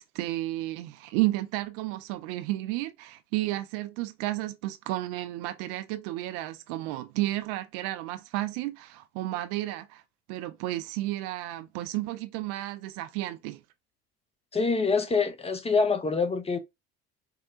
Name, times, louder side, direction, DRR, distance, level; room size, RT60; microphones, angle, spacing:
voice 1, 0.0-10.0 10.3-13.6, right 16 dB, 70° right, 0.5 m, -32 dB
voice 2, 14.5-16.6, left 4 dB, 20° left, 0.7 m, -25 dB
4.6 x 2.1 x 2.4 m
hypercardioid pair, 70°, 31 cm